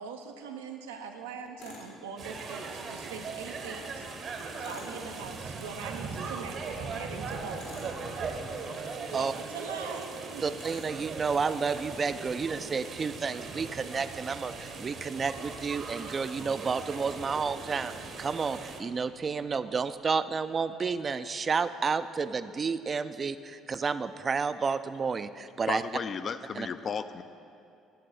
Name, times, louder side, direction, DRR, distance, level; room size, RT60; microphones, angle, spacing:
voice 1, 0.0-4.1 4.6-8.0 9.1-10.5, right 5 dB, 85° right, 4 dB, 0.5 m, -42 dB
Tools, 1.6-1.9 4.6-5.0 7.5-8.0 10.5-10.9, left 2 dB, 75° left, 1.8 m, -47 dB
sound 1, 2.2-18.8, right 4 dB, 55° right, 0.9 m, -39 dB
voice 2, 10.4-17.9 18.2-25.8 26.6-26.7, right 5 dB, 35° right, 12 dB, 0.3 m, -31 dB
sound 2, 16.4-20.0, right 1 dB, 10° right, 0.7 m, -55 dB
voice 3, 25.7-27.2, left 6 dB, 45° left, 12 dB, 0.4 m, -34 dB
10.0 x 3.8 x 6.6 m, 2.5 s
hypercardioid pair, 60°, 0 cm